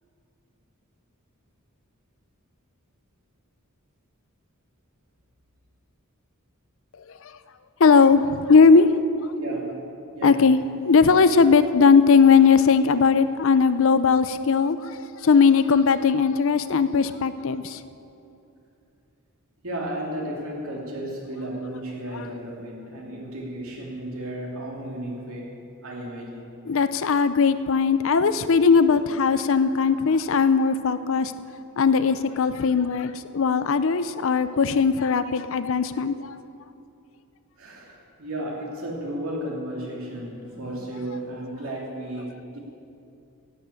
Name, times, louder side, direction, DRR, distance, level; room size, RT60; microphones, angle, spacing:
voice 1, 7.8-9.4 10.2-10.6 10.8-14.9 15.2-17.8 26.7-31.3 31.8-36.3, left 5 dB, 65° left, 13 dB, 0.5 m, -19 dB
voice 2, 9.4-9.8 10.1-10.5 19.6-25.5 25.8-26.5 37.6-42.6, right 1 dB, 75° right, -1 dB, 2.8 m, -34 dB
11.5 x 8.6 x 8.6 m, 2.7 s
head